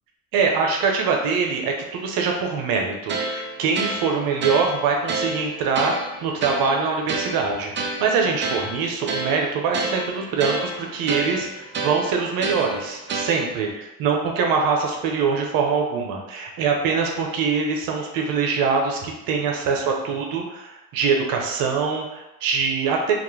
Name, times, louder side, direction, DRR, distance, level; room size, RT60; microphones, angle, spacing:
voice 1, 0.3-23.1, right 5 dB, 75° right, 1 dB, 0.6 m, -23 dB
sound 1, 3.1-13.7, right 3 dB, 35° right, 0.4 m, -30 dB
2.3 x 2.0 x 3.1 m, 0.99 s
supercardioid pair, 75°, 35 cm